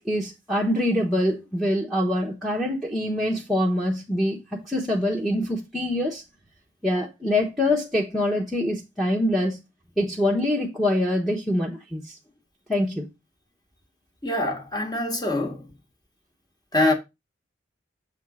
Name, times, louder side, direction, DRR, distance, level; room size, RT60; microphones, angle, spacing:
voice 1, 0.0-6.2 6.8-9.6 10.0-12.2 12.7-13.1, left 1 dB, ahead, 1.0 m, -25 dB
voice 2, 14.2-15.7 16.7-16.9, left 2 dB, 20° left, 1.4 m, -24 dB
7.2 x 3.6 x 4.8 m
head